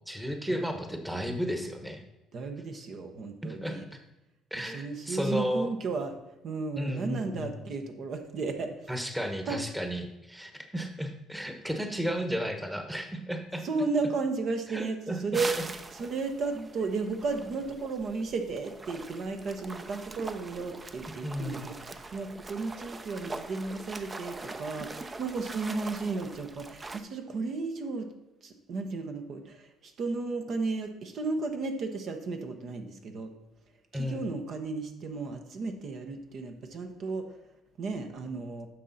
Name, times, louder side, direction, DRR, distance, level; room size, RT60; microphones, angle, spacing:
voice 1, 0.1-2.0 2.7-2.8 3.4-3.8 4.5-5.7 6.8-7.5 8.9-13.6 14.7-15.2 21.2-21.7 33.9-34.3, equal, 5° right, 6 dB, 1.1 m, -33 dB
voice 2, 2.3-3.8 4.6-6.1 6.4-8.9 9.5-9.6 13.6-28.1 28.4-33.3 33.9-37.3 37.8-38.7, right 3 dB, 55° right, 5 dB, 1.1 m, -34 dB
sound 1, 15.3-27.0, right 3 dB, 25° right, 0.6 m, -42 dB
10.0 x 6.5 x 4.1 m, 0.98 s
cardioid pair, 100°, 0 cm